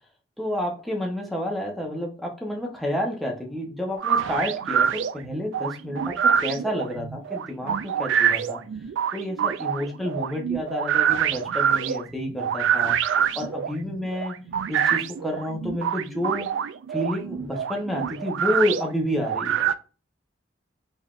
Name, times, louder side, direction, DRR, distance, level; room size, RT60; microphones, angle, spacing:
voice 1, 0.4-8.6 9.1-12.9 13.3-14.3 14.7-16.5 16.9-19.6, left 1 dB, ahead, -1 dB, 0.8 m, -29 dB
sound 1, 4.0-19.7, right 8 dB, 80° right, 0.3 m, -25 dB
3.9 x 3.4 x 2.4 m, 0.35 s
head